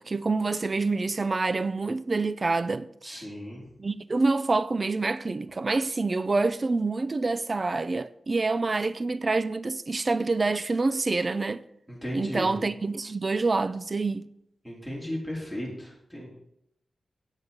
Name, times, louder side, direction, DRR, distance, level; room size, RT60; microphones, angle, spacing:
voice 1, 0.0-3.2 3.8-11.6 12.1-14.3, right 3 dB, 35° right, 0.4 m, -27 dB
voice 2, 3.0-3.6 11.9-12.5 14.6-16.3, equal, 5° right, 4.2 m, -35 dB
9.0 x 8.0 x 6.9 m
wide cardioid pair, 115°, 0 cm